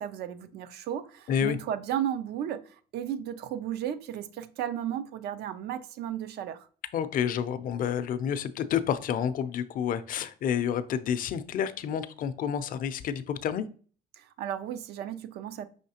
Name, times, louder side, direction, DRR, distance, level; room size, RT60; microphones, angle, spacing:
voice 1, 0.0-6.7 14.2-15.7, right 10 dB, 75° right, 0.5 m, -34 dB
voice 2, 6.9-13.7, left 8 dB, 55° left, 0.5 m, -29 dB
5.6 x 3.1 x 2.8 m
cardioid pair, 110°, 17 cm